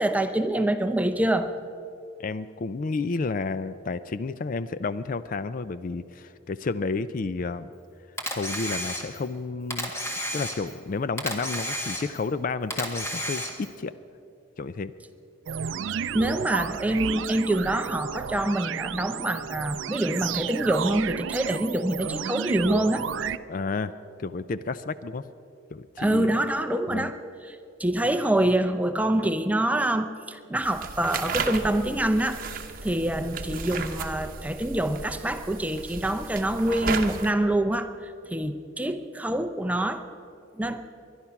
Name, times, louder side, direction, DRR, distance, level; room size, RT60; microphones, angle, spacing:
voice 1, 0.0-1.5 16.1-23.0 26.0-27.2 27.5-32.4 32.8-40.0 40.6-40.8, right 1 dB, 10° right, 8 dB, 0.6 m, -26 dB
voice 2, 2.2-7.7 8.3-13.9 14.6-14.9 23.5-23.9 24.2-25.2 25.7-26.3 26.9-27.1, left 4 dB, 45° left, 14 dB, 0.4 m, -31 dB
Camera, 8.2-9.3 9.7-10.8 11.2-12.3 12.7-13.8, equal, 15° left, 1.8 m, -32 dB
sound 1, 15.5-23.4, right 7 dB, 75° right, 0.4 m, -32 dB
sound 2, 30.6-37.3, right 4 dB, 45° right, 1.0 m, -34 dB
22.0 x 11.0 x 5.9 m, 2.6 s
head